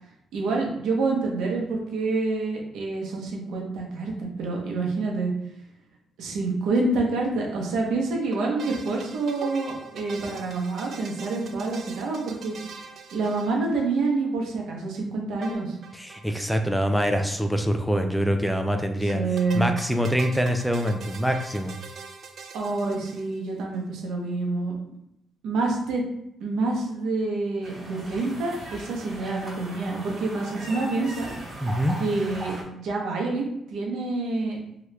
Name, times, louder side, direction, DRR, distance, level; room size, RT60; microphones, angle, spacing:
voice 1, 0.3-5.3 6.2-12.5 13.1-15.8 19.0-19.7 22.5-24.7 25.4-26.0 26.4-31.3 32.0-33.4 33.7-34.6, right 3 dB, 80° right, -1 dB, 0.9 m, -27 dB
sound 1, 8.3-14.1 15.4-16.3 16.5-16.6 16.8-16.9 19.1-23.6, right 5 dB, 60° right, 0.4 m, -42 dB
voice 2, 15.9-19.2 19.5-21.7 31.6-32.0, equal, ahead, 5 dB, 0.4 m, -25 dB
sound 2, 27.6-32.6, right 1 dB, 30° right, 1.0 m, -39 dB
2.9 x 2.3 x 3.2 m, 0.79 s
cardioid pair, 90°, 0 cm